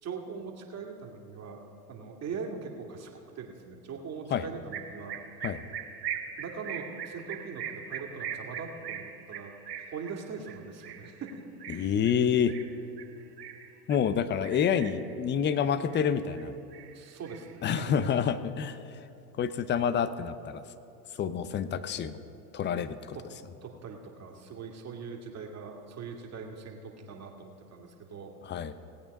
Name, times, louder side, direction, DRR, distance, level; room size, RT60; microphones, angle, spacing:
voice 1, 0.0-5.2 6.4-9.5 9.9-11.3 11.7-11.9 16.9-17.9 23.1-23.2 23.6-28.8, right 5 dB, 35° right, 1 dB, 2.2 m, -41 dB
sound 1, 4.7-14.1 14.4-15.1 15.5-16.4 16.7-18.1, right 8 dB, 90° right, 1.2 m, -41 dB
voice 2, 11.7-12.6 13.9-16.5 17.6-18.8 19.4-20.6 21.2-22.2 22.5-23.2 28.4-28.7, left 7 dB, 25° left, 13 dB, 0.6 m, -28 dB
18.5 x 8.7 x 5.3 m, 2.8 s
hypercardioid pair, 95°, 47 cm